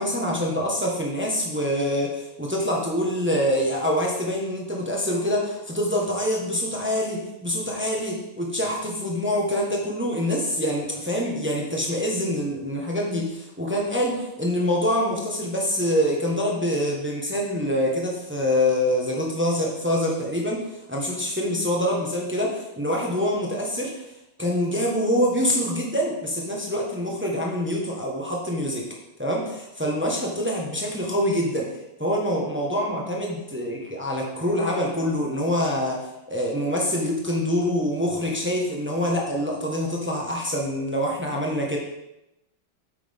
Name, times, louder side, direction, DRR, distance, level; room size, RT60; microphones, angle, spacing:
voice 1, 0.0-24.0 24.4-28.9 29.2-31.7 32.0-41.8, equal, 10° right, -2 dB, 0.9 m, -25 dB
8.4 x 5.8 x 3.6 m, 0.90 s
omnidirectional pair, 2.2 m